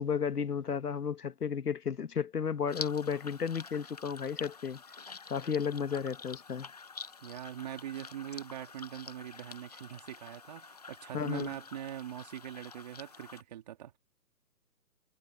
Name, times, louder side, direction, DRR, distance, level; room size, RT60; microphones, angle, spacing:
voice 1, 0.0-4.8 5.3-6.7 11.1-11.5, left 7 dB, 65° left, 1.8 m, -33 dB
sound 1, 2.7-13.4, left 5 dB, 25° left, 0.9 m, -47 dB
voice 2, 7.2-14.0, right 11 dB, 25° right, 3.0 m, -42 dB
hypercardioid pair, 165°, 49 cm